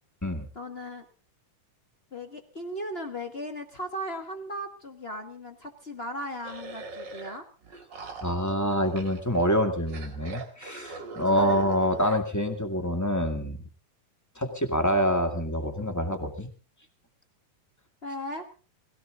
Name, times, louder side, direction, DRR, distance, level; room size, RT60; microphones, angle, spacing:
voice 1, 0.5-1.0 2.1-7.4 11.3-11.6 18.0-18.4, equal, 55° left, 5 dB, 0.6 m, -37 dB
sound 1, 6.4-7.3 7.6-9.4 9.9-12.2, right 3 dB, 40° right, 2.4 m, -41 dB
voice 2, 8.2-13.6 14.3-16.5, equal, 10° left, 5 dB, 1.3 m, -26 dB
20.0 x 17.0 x 3.8 m, 0.37 s
omnidirectional pair, 3.6 m